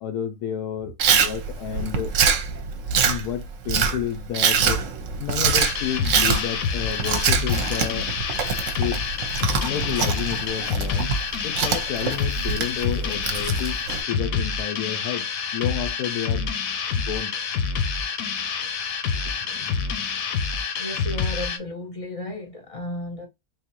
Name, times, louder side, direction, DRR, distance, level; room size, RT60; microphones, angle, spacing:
voice 1, 0.0-2.1 3.0-4.8 5.2-8.1 8.8-9.0 9.6-11.1 11.4-16.5 17.0-17.3 19.1-20.6, left 10 dB, 90° left, 1.1 m, -31 dB
Chewing mastication, 1.0-14.0, right 6 dB, 65° right, 0.9 m, -24 dB
sound 1, 5.6-21.6, left 5 dB, 70° left, 1.0 m, -27 dB
voice 2, 20.8-23.3, left 1 dB, 30° left, 0.7 m, -33 dB
3.7 x 2.7 x 2.9 m
omnidirectional pair, 1.6 m